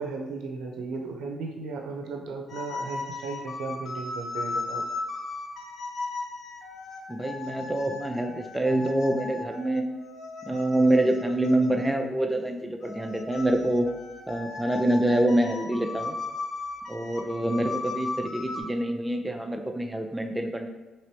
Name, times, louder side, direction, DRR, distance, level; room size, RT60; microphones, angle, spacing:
voice 1, 0.0-4.8, right 4 dB, 80° right, 2 dB, 0.4 m, -35 dB
sound 1, 2.5-12.1 12.8-18.6, left 3 dB, 55° left, 0.5 m, -36 dB
voice 2, 7.1-9.8 10.5-13.9 14.3-16.1 16.9-20.7, right 1 dB, 10° right, 4 dB, 0.4 m, -26 dB
3.0 x 2.9 x 3.1 m, 1.2 s
cardioid pair, 90°, 0 cm